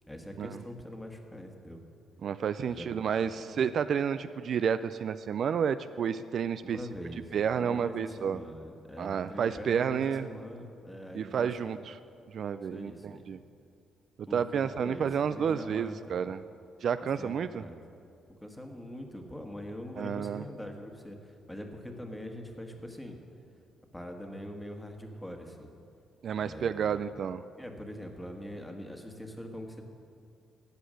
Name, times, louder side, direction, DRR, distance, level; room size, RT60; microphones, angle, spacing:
voice 1, 0.1-1.8 2.7-3.6 6.6-11.8 12.7-13.3 14.2-16.2 17.2-17.8 18.4-23.2 23.9-25.7 26.3-27.1 27.6-29.8, equal, 5° left, 3 dB, 1.5 m, -43 dB
voice 2, 2.2-6.8 7.3-8.4 9.0-10.3 11.1-12.0 12.3-13.4 14.2-16.4 16.8-17.7 20.0-20.4 26.2-27.4, right 7 dB, 60° right, 12 dB, 0.3 m, -30 dB
13.0 x 8.4 x 6.3 m, 2.5 s
cardioid pair, 90°, 0 cm